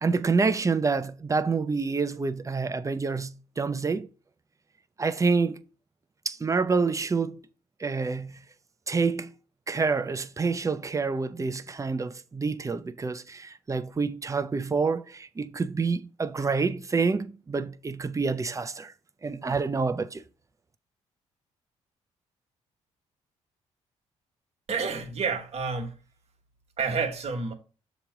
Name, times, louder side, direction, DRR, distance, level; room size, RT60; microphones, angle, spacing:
voice 1, 0.0-4.1 5.0-5.6 6.3-7.4 7.8-8.4 8.9-9.3 9.7-18.9 19.2-20.2, right 4 dB, 25° right, 0.6 m, -27 dB
voice 2, 24.7-25.9 26.8-27.5, right 5 dB, 50° right, 1.3 m, -29 dB
6.8 x 3.0 x 4.9 m
supercardioid pair, 55°, 14 cm